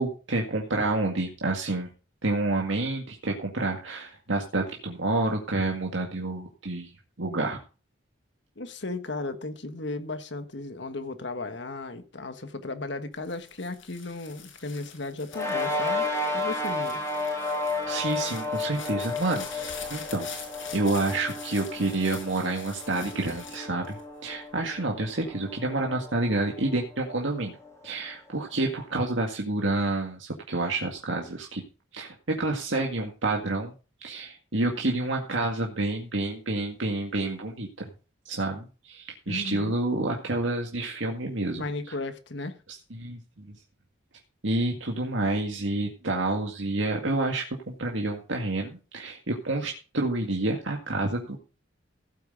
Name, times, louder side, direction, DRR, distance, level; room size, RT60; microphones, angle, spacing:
voice 1, 0.0-1.9 2.2-6.9 7.2-7.6 17.9-20.3 20.7-27.6 27.8-31.6 31.9-33.7 34.0-37.9 38.3-41.6 42.9-43.6 44.4-51.4, right 2 dB, 75° right, 2.0 m, -29 dB
voice 2, 8.6-17.0 39.3-39.7 41.5-42.6, left 2 dB, 60° left, 1.5 m, -35 dB
sound 1, 13.2-24.5 25.0-25.6, left 7 dB, 80° left, 5.7 m, -45 dB
sound 2, 15.3-28.1, left 2 dB, 15° left, 3.2 m, -33 dB
16.0 x 8.6 x 3.9 m
head